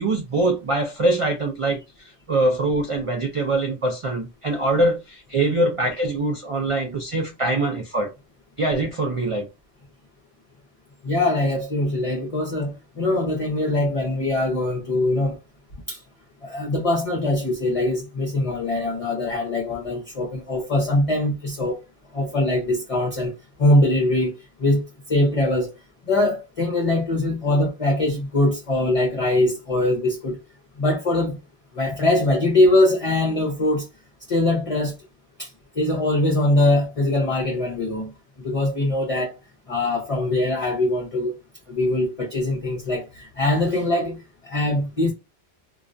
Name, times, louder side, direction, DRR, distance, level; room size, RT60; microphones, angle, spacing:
voice 1, 0.0-8.1 8.6-9.5, right 2 dB, 50° right, 0.4 m, -23 dB
voice 2, 11.0-15.4 15.9-16.0 16.4-21.8 22.1-23.3 23.6-24.8 25.1-25.7 26.1-30.4 30.8-31.4 31.7-33.9 34.3-34.9 35.4-35.5 35.8-38.1 38.4-39.4 39.7-41.3 41.7-45.1, left 1 dB, 40° left, 0.6 m, -22 dB
2.3 x 2.2 x 2.5 m
omnidirectional pair, 1.1 m